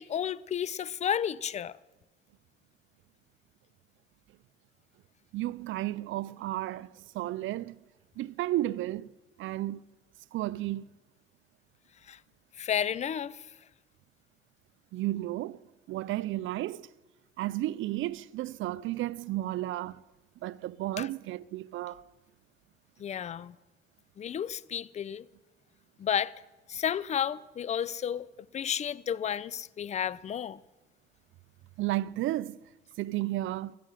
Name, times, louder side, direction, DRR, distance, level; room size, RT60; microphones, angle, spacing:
voice 1, 0.0-1.8 12.1-12.2 12.6-13.4 21.0-21.1 23.0-23.5 24.2-25.2 26.0-26.3 26.7-28.3 28.5-30.6, left 9 dB, 35° left, 0.4 m, -32 dB
voice 2, 5.3-7.8 8.2-9.1 9.4-9.8 10.3-10.8 14.9-15.6 15.9-16.9 17.4-20.0 20.4-22.0 31.8-32.6 33.0-33.8, right 15 dB, 75° right, 0.4 m, -33 dB
12.5 x 7.6 x 9.9 m
cardioid pair, 90°, 20 cm